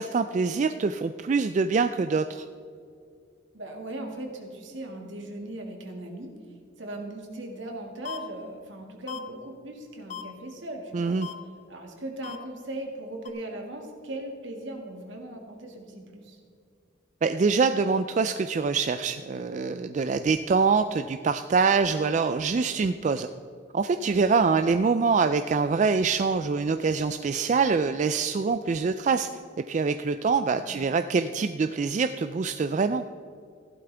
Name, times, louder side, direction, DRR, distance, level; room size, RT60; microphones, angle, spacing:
voice 1, 0.0-2.5 10.9-11.3 17.2-23.3 23.7-29.3 29.7-33.0, right 4 dB, 40° right, 9 dB, 0.3 m, -24 dB
voice 2, 3.5-6.3 6.8-11.2 11.7-16.4 30.6-30.9, right 1 dB, 75° right, 2 dB, 2.0 m, -38 dB
sound 1, 8.0-8.2 9.1-9.2 10.1-10.2 11.2-11.3 12.2-12.4 13.3-13.4, left 8 dB, 40° left, 0.6 m, -36 dB
15.5 x 11.5 x 3.4 m, 2.4 s
head